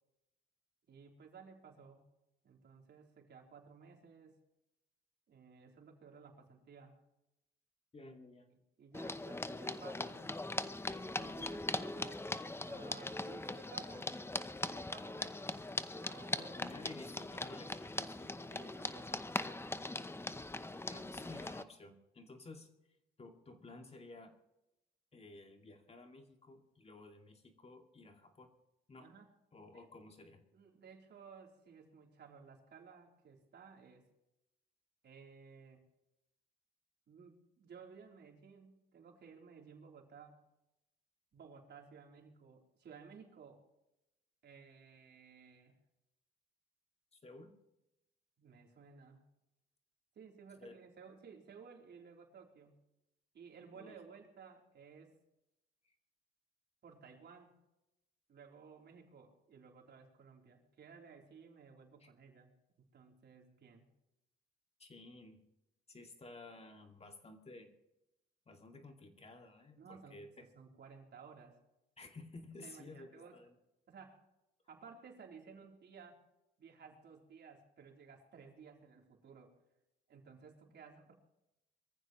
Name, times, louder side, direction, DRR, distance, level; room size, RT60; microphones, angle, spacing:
voice 1, 0.9-2.1 2.4-4.4 5.3-7.0 8.0-10.4 11.1-14.2 14.6-15.4 15.9-16.6 18.5-19.3 29.0-29.3 29.7-29.9 30.5-34.1 35.0-35.8 37.1-40.5 41.3-43.6 44.4-45.8 48.4-49.3 50.2-52.8 53.3-55.2 56.8-57.6 58.3-62.5 62.9-63.9 69.8-71.6 72.6-73.4 73.9-74.2 74.7-76.2 76.6-79.5 80.1-81.1, right 6 dB, 60° right, 1 dB, 3.7 m, -57 dB
voice 2, 7.9-8.5 16.1-19.0 20.9-22.7 23.2-24.3 25.1-28.5 28.9-29.1 29.5-30.4 47.1-47.5 50.6-50.8 53.7-54.0 55.8-55.9 62.0-62.1 64.8-65.4 65.9-67.7 68.5-70.5 72.0-73.5, left 2 dB, 30° left, 4 dB, 2.4 m, -54 dB
sound 1, 8.9-21.6, left 2 dB, 10° left, 0.8 m, -41 dB
22.5 x 14.5 x 3.1 m, 0.89 s
cardioid pair, 90°, 20 cm